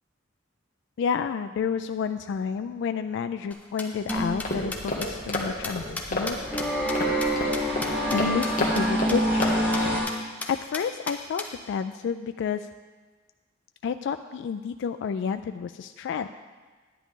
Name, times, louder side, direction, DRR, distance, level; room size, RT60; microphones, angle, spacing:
voice 1, 1.0-6.4 8.1-9.6 10.5-12.7 13.8-16.3, left 6 dB, 65° left, 9 dB, 0.3 m, -30 dB
sound 1, 3.5-8.2 8.4-8.5 8.8-8.9 9.1-9.2 9.4-9.8 10.1-10.2 10.4-11.5, left 2 dB, 5° left, 0.9 m, -35 dB
sound 2, 4.1-10.0, equal, 10° right, 2.4 m, -27 dB
sound 3, 4.2-10.0, left 1 dB, 45° left, 1.6 m, -32 dB
10.5 x 9.6 x 3.7 m, 1.4 s
head